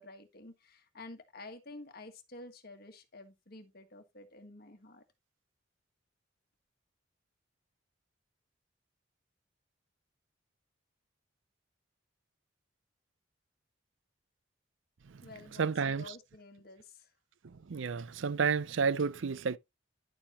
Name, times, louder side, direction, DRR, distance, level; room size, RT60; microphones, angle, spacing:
voice 1, 0.0-5.0 15.2-17.1, left 2 dB, 50° left, 1.5 m, -50 dB
voice 2, 15.6-16.0 17.7-19.6, right 5 dB, 70° right, 0.5 m, -30 dB
10.5 x 7.1 x 3.0 m
head